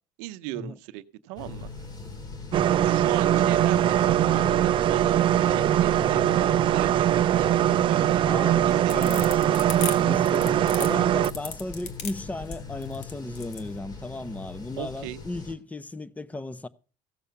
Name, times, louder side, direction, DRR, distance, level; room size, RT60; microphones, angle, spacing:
voice 1, 0.2-1.7 2.8-9.3 14.8-15.2, right 15 dB, 85° right, 0.7 m, -37 dB
sound 1, 1.4-15.5, left 4 dB, 35° left, 2.7 m, -40 dB
sound 2, 2.5-11.3, right 11 dB, 45° right, 0.5 m, -22 dB
voice 2, 8.3-9.3 10.0-16.7, left 2 dB, 15° left, 0.7 m, -35 dB
sound 3, 8.5-13.7, left 7 dB, 65° left, 1.9 m, -36 dB
15.5 x 6.8 x 5.8 m
cardioid pair, 110°, 12 cm